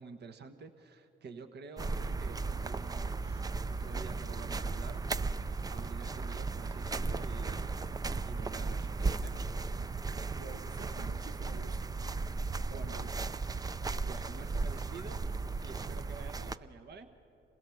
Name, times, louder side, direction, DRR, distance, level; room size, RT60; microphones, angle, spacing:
voice 1, 0.0-5.4 5.7-7.8 8.2-9.5 12.7-13.0 13.8-17.1, right 4 dB, 55° right, 8 dB, 1.3 m, -49 dB
sound 1, 1.8-16.6, right 3 dB, 20° right, 0.4 m, -36 dB
voice 2, 10.4-11.9 12.5-13.6, right 4 dB, 80° right, 4 dB, 1.2 m, -51 dB
26.5 x 17.0 x 7.1 m, 2.8 s
cardioid pair, 90°, 20 cm